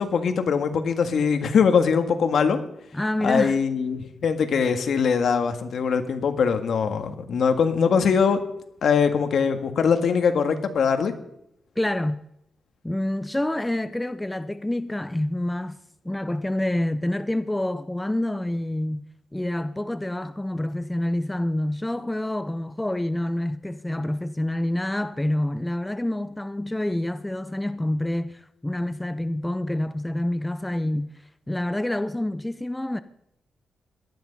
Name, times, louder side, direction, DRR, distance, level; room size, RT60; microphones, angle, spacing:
voice 1, 0.0-2.6 3.2-8.4 8.8-11.1, left 6 dB, 65° left, 1.8 m, -22 dB
voice 2, 2.9-3.6 11.8-12.2 12.8-15.8 16.0-19.1 19.3-33.0, left 1 dB, 10° left, 0.6 m, -27 dB
18.0 x 12.5 x 5.4 m
wide cardioid pair, 130°, 0 cm